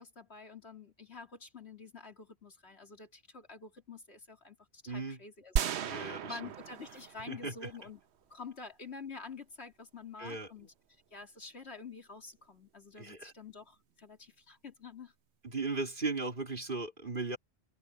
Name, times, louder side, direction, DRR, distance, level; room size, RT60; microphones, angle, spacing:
voice 1, 0.0-8.0 8.3-10.7 11.1-15.1, left 4 dB, 80° left, 3.4 m, -48 dB
voice 2, 4.9-5.2 5.8-6.5 7.3-7.7 10.2-10.7 13.0-13.3 15.4-17.4, right 3 dB, 50° right, 3.5 m, -37 dB
sound 1, 5.6-7.8, right 8 dB, 80° right, 1.0 m, -35 dB
omnidirectional pair, 1.1 m